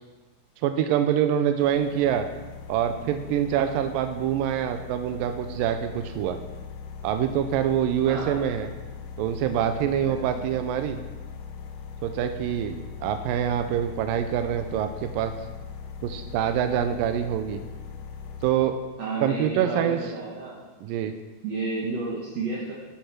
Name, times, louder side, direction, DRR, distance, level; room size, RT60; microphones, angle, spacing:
voice 1, 0.6-2.3 2.7-6.4 7.0-8.7 9.2-11.0 12.0-15.3 16.0-17.6 18.4-18.8 19.2-20.0 20.8-21.1, right 10 dB, 85° right, 8 dB, 2.0 m, -25 dB
sound 1, 1.6-18.5, left 6 dB, 75° left, 1.9 m, -40 dB
voice 2, 8.1-8.5 10.0-10.5 19.0-20.7 21.4-22.7, right 3 dB, 60° right, -4 dB, 2.0 m, -32 dB
10.0 x 8.8 x 6.0 m, 1.2 s
omnidirectional pair, 4.6 m